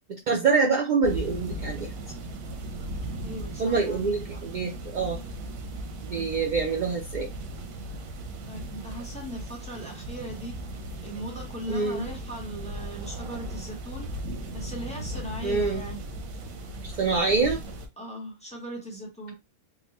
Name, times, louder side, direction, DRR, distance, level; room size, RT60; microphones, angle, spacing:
voice 1, 0.1-1.9 3.6-5.2 6.0-7.3 11.7-12.1 15.4-15.8 17.0-17.6, right 4 dB, 70° right, 1 dB, 0.4 m, -25 dB
sound 1, 1.0-17.9, right 1 dB, 90° right, 1.1 m, -37 dB
voice 2, 3.2-4.4 8.4-14.1 14.5-16.0 18.0-19.3, equal, 5° left, -1 dB, 0.9 m, -39 dB
3.8 x 2.1 x 2.9 m, 0.23 s
omnidirectional pair, 1.4 m